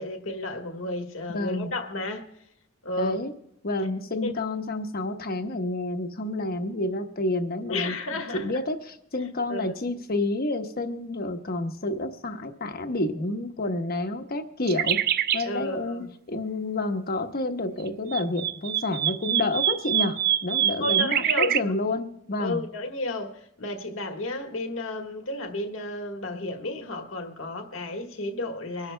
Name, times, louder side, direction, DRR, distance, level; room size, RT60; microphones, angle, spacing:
voice 1, 0.0-2.3 2.8-3.2 3.8-4.3 7.7-8.6 9.5-9.7 15.4-16.1 20.8-21.8 22.4-28.9, left 1 dB, 70° left, 1.5 m, -32 dB
voice 2, 1.3-1.7 2.9-3.3 3.6-7.9 8.4-15.0 15.3-20.2 20.4-22.6, left 2 dB, 50° left, 1.1 m, -29 dB
sound 1, 14.7-15.5 17.9-21.6, right 11 dB, 50° right, 0.4 m, -25 dB
25.0 x 11.5 x 2.2 m
head